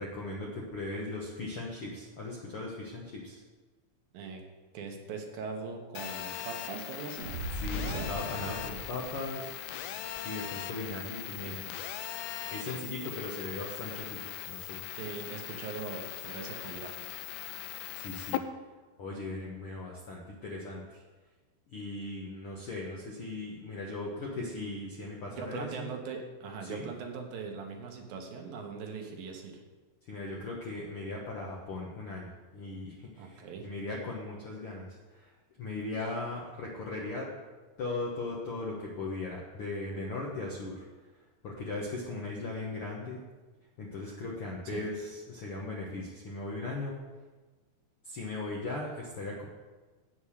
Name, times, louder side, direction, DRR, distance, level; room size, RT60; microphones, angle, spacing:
voice 1, 0.0-3.4 7.6-9.5 10.2-11.7 12.4-14.2 14.5-14.8 18.0-18.4 19.0-21.0 21.7-25.9 26.6-26.9 30.1-35.3 35.6-37.3 37.8-40.8 41.4-43.2 43.8-47.0 48.0-49.4, left 2 dB, 65° left, -3 dB, 1.3 m, -38 dB
voice 2, 4.7-7.3 7.7-8.1 12.6-12.8 15.0-17.1 25.3-29.6 33.2-33.7 44.7-44.8, right 5 dB, 75° right, 2 dB, 2.9 m, -40 dB
Telephone, 6.0-18.4, left 12 dB, 85° left, 2.5 m, -40 dB
Fire, 7.2-9.6, equal, 40° right, 1.1 m, -38 dB
8.6 x 7.1 x 6.4 m, 1.3 s
omnidirectional pair, 4.4 m